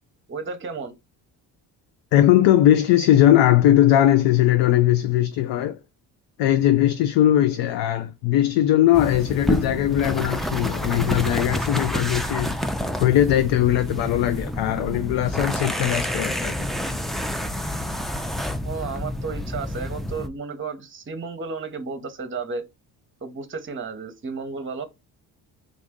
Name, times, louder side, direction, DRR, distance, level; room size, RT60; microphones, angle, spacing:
voice 1, 0.3-0.9 18.6-22.6 23.2-24.8, right 4 dB, 25° right, 0.8 m, -33 dB
voice 2, 2.1-5.8 6.4-12.5 13.0-16.7, left 12 dB, 70° left, 0.5 m, -19 dB
sound 1, 8.9-20.3, left 1 dB, ahead, 0.3 m, -28 dB
3.7 x 2.5 x 3.5 m
supercardioid pair, 60°, 46 cm